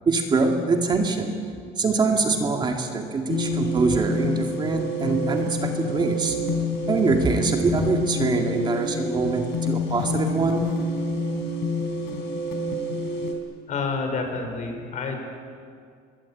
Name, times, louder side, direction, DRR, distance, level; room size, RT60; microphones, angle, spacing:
voice 1, 0.1-1.4 1.8-6.4 6.9-10.7, right 4 dB, 25° right, 3 dB, 2.2 m, -24 dB
sound 1, 3.3-13.3, left 1 dB, 85° left, 4.5 m, -27 dB
voice 2, 13.7-15.2, left 4 dB, 45° left, 5 dB, 5.0 m, -28 dB
26.0 x 21.5 x 8.7 m, 2.2 s
cardioid pair, 155°, 17 cm